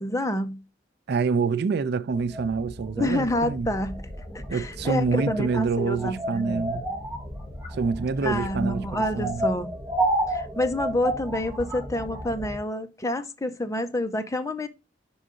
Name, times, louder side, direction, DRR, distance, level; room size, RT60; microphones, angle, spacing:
voice 1, 0.0-0.6 3.0-4.0 4.3-6.7 8.2-9.7 10.3-14.7, left 1 dB, 15° left, 0.6 m, -28 dB
voice 2, 1.1-3.7 4.5-6.8 7.7-9.5, right 5 dB, 60° right, 0.4 m, -26 dB
sound 1, 2.1-12.6, right 1 dB, 20° right, 1.7 m, -32 dB
5.6 x 3.8 x 4.9 m
head